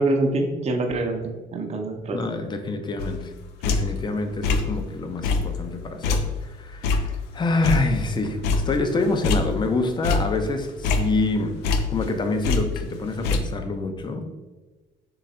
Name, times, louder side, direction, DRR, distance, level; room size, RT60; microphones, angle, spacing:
voice 1, 0.0-2.2, right 2 dB, 40° right, 3 dB, 0.8 m, -25 dB
voice 2, 2.1-3.3 3.6-11.6 11.9-14.3, left 2 dB, 25° left, 6 dB, 0.6 m, -26 dB
sound 1, 3.0-4.1 4.4-4.9 5.2-8.2 8.4-9.7 10.0-12.2 12.4-13.4, left 4 dB, 85° left, 0.5 m, -25 dB
3.9 x 3.2 x 4.2 m, 1.2 s
cardioid pair, 110°, 17 cm